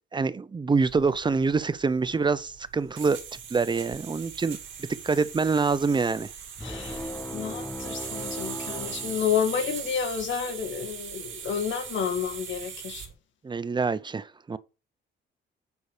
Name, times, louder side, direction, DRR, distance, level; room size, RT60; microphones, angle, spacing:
voice 1, 0.1-3.2 3.5-6.3 13.4-14.6, right 4 dB, 25° right, 0.7 m, -26 dB
sound 1, 0.8-13.1, right 7 dB, 75° right, 2.5 m, -40 dB
voice 2, 6.6-13.1, left 7 dB, 70° left, 1.8 m, -30 dB
sound 2, 6.6-9.9, left 1 dB, 10° left, 1.1 m, -38 dB
7.0 x 4.7 x 6.7 m
cardioid pair, 90°, 20 cm